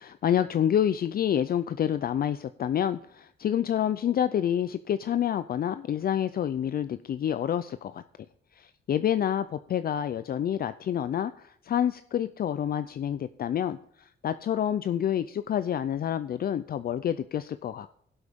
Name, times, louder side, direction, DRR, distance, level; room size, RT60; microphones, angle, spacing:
voice 1, 0.0-8.0 8.5-17.9, left 10 dB, 50° left, 12 dB, 0.5 m, -28 dB
16.5 x 8.0 x 3.6 m, 0.69 s
cardioid pair, 125°, 20 cm